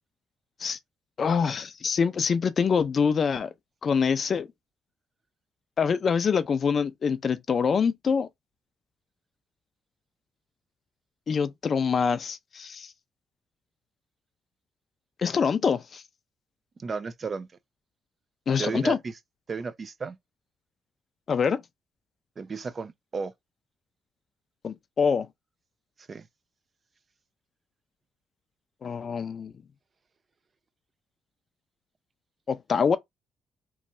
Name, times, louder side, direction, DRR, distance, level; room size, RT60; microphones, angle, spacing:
voice 1, 1.2-3.5 3.8-4.5 5.8-8.3 11.3-12.9 15.2-16.0 18.5-19.0 21.3-21.6 24.6-25.3 28.8-29.5 32.5-33.0, left 6 dB, 45° left, 0.4 m, -25 dB
voice 2, 16.8-17.5 18.6-19.1 19.5-20.2 22.4-23.3 26.1-26.3, right 4 dB, 40° right, 0.4 m, -33 dB
3.1 x 2.3 x 2.6 m
cardioid pair, 90°, 0 cm